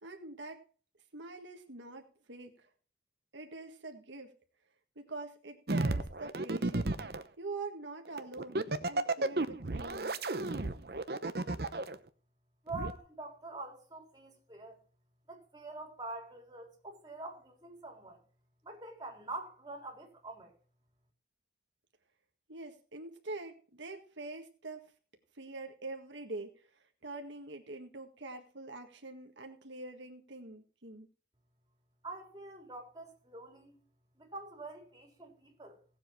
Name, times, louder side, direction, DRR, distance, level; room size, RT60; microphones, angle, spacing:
voice 1, 0.0-0.6 1.1-2.7 3.3-4.3 4.9-10.1 22.5-24.9 25.3-31.1, right 2 dB, 85° right, 1.7 m, -45 dB
sound 1, 5.7-7.2 8.2-11.9 12.7-12.9, right 2 dB, 55° right, 0.9 m, -33 dB
voice 2, 12.6-14.8 15.3-18.2 18.6-20.5 32.0-33.8 34.2-35.8, right 2 dB, 20° right, 3.7 m, -45 dB
17.0 x 7.7 x 4.5 m
head